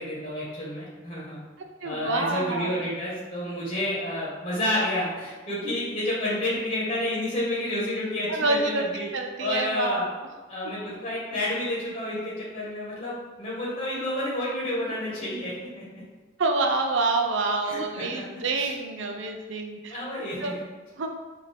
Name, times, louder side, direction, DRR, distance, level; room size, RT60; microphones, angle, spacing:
voice 1, 0.0-1.4 1.8-9.1 9.4-10.1 10.5-16.0 17.6-18.7 19.9-20.6, left 1 dB, 30° left, -7 dB, 1.3 m, -30 dB
voice 2, 1.8-2.7 8.3-8.9 9.1-10.1 16.4-20.0 20.4-20.5 21.0-21.2, right 3 dB, 70° right, 4 dB, 0.5 m, -27 dB
5.1 x 2.7 x 3.4 m, 1.3 s
head